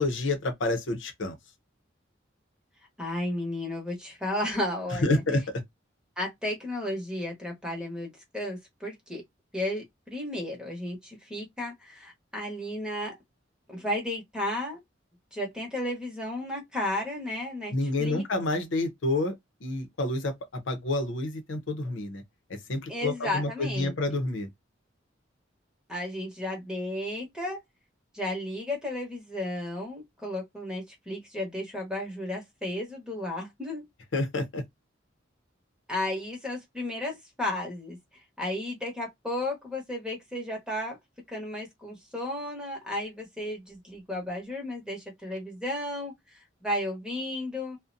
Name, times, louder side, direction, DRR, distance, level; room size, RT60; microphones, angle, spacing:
voice 1, 0.0-1.4 5.0-5.4 17.7-19.3 19.6-22.2 22.7-24.5 34.1-34.6, left 2 dB, 90° left, 0.6 m, -28 dB
voice 2, 3.0-5.2 6.2-9.2 9.5-13.2 13.7-14.8 15.3-17.7 18.0-18.2 22.9-23.9 25.9-27.6 28.1-33.8 35.9-41.0 41.3-47.8, left 1 dB, 5° right, 0.9 m, -33 dB
2.4 x 2.1 x 2.5 m
head